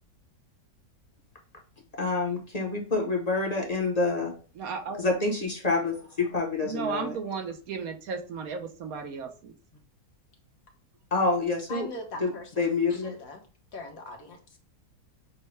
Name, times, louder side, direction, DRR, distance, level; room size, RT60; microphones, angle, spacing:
voice 1, 2.0-4.3 5.0-7.2 11.1-11.9 12.2-13.1, left 3 dB, 35° left, 0 dB, 0.8 m, -27 dB
voice 2, 4.6-5.0 6.6-9.5, right 5 dB, 70° right, 5 dB, 1.2 m, -34 dB
voice 3, 11.7-12.7 13.0-13.4 13.7-14.4, left 2 dB, 65° left, 2 dB, 1.4 m, -40 dB
6.4 x 2.2 x 3.1 m, 0.39 s
omnidirectional pair, 1.6 m